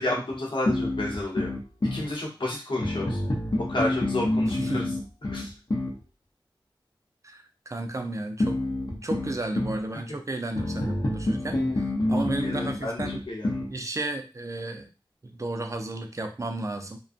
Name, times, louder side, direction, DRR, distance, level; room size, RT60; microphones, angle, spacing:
voice 1, 0.0-1.5 1.9-3.2 3.7-4.9 5.3-5.5 12.4-13.7, left 2 dB, 70° left, -3 dB, 0.9 m, -31 dB
sound 1, 0.7-2.1 2.8-6.0 8.4-9.8 10.5-13.7, left 1 dB, 50° left, 0.7 m, -28 dB
voice 2, 4.5-5.0 7.2-8.6 8.9-13.2 13.7-14.9 15.2-17.0, right 2 dB, 35° right, 5 dB, 0.5 m, -33 dB
2.5 x 2.2 x 2.4 m, 0.31 s
wide cardioid pair, 50°, 9 cm